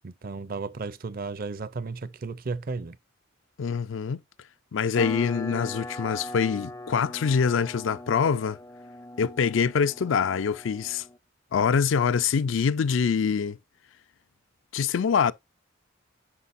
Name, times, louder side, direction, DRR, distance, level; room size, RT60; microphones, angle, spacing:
voice 1, 0.0-3.0, right 4 dB, 45° right, 0.5 m, -34 dB
voice 2, 3.6-4.2 4.7-8.6 9.2-11.0 11.5-13.6 14.7-15.3, left 6 dB, 75° left, 0.4 m, -24 dB
sound 1, 5.0-11.2, left 2 dB, 15° left, 0.4 m, -40 dB
9.7 x 5.9 x 2.6 m
head